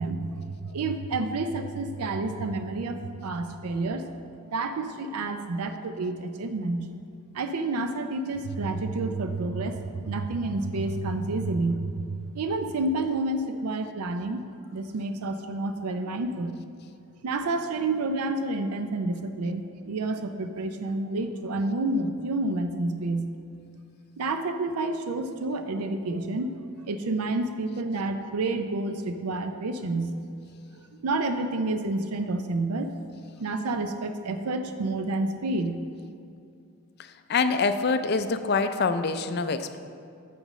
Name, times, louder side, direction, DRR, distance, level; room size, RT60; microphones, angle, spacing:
voice 1, 0.0-4.1 4.5-6.9 7.3-14.4 14.7-16.5 17.2-23.3 24.2-30.1 30.9-32.9 33.4-35.8, right 2 dB, 90° right, 8 dB, 0.5 m, -29 dB
voice 2, 37.0-39.8, left 4 dB, 45° left, 10 dB, 0.4 m, -25 dB
8.8 x 8.5 x 3.1 m, 2.5 s
head